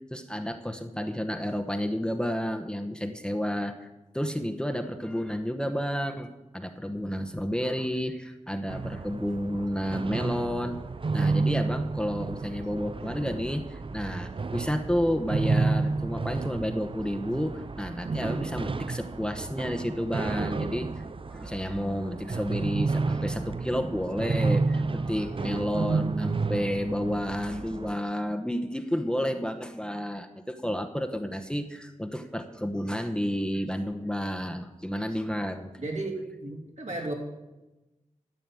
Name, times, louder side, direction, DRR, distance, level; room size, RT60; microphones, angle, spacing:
voice 1, 0.0-3.9 4.1-10.8 11.1-21.0 21.3-35.7, equal, 5° left, 5 dB, 1.0 m, -31 dB
sound 1, 8.7-27.9, right 3 dB, 45° right, 0.5 m, -31 dB
voice 2, 35.8-36.2 36.4-37.1, right 2 dB, 65° right, 0 dB, 3.1 m, -33 dB
12.5 x 5.8 x 9.0 m, 1.0 s
wide cardioid pair, 55°, 13 cm